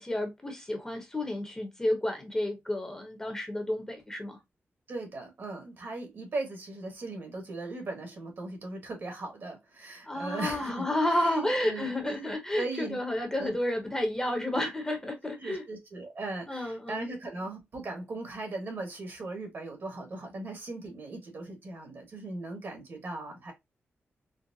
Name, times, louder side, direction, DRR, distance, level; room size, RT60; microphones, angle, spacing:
voice 1, 0.0-4.4 10.1-15.6 16.5-17.1, left 1 dB, 15° left, 0.8 m, -31 dB
voice 2, 4.9-12.3 12.5-13.0 13.4-13.5 15.4-23.5, right 2 dB, 55° right, 1.3 m, -38 dB
3.9 x 2.0 x 2.6 m
wide cardioid pair, 135°, 4 cm